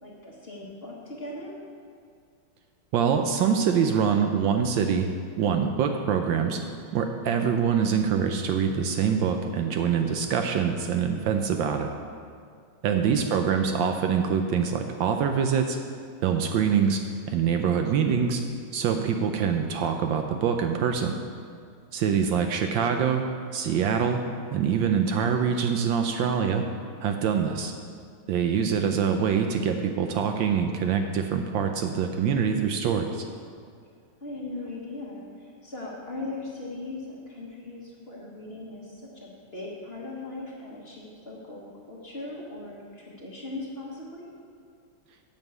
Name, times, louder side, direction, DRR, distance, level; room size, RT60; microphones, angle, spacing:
voice 1, 0.0-1.6 12.9-13.7 22.0-22.2 34.2-44.3, left 2 dB, 35° left, -4 dB, 1.3 m, -39 dB
voice 2, 2.9-5.1 5.4-6.6 6.9-11.9 12.8-15.8 16.2-17.0 17.3-18.4 18.7-21.2 21.9-23.2 23.5-24.2 24.5-26.6 27.0-27.7 28.3-33.3, right 7 dB, 75° right, 5 dB, 1.2 m, -24 dB
9.2 x 5.5 x 8.0 m, 2.2 s
omnidirectional pair, 2.3 m